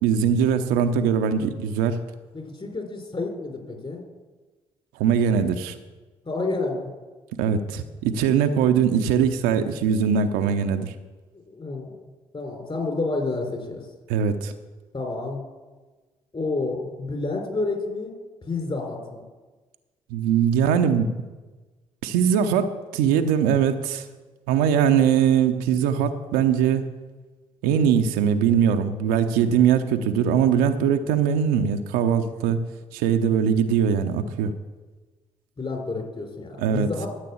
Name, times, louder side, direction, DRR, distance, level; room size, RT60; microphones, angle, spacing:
voice 1, 0.0-2.0 5.0-5.7 7.4-10.9 14.1-14.5 20.1-21.1 22.0-24.0 24.5-26.8 27.6-32.6 32.9-34.5 36.6-36.9, right 7 dB, 70° right, 7 dB, 0.8 m, -21 dB
voice 2, 2.3-4.0 6.2-6.9 11.5-11.9 12.3-13.8 14.9-15.4 16.3-18.1 18.4-19.2 35.6-37.1, left 3 dB, 35° left, 2 dB, 4.1 m, -29 dB
13.0 x 7.6 x 7.1 m, 1.3 s
figure-of-eight pair, 40°, 16 cm